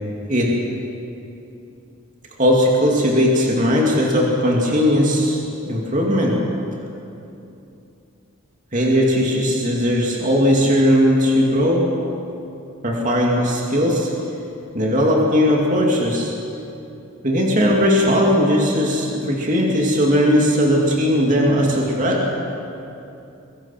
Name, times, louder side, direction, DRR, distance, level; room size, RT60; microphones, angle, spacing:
voice 1, 2.4-6.4 8.7-11.9 12.8-14.1 14.7-16.3 17.2-22.3, equal, 35° right, -2 dB, 2.5 m, -18 dB
23.0 x 22.0 x 5.8 m, 2.8 s
head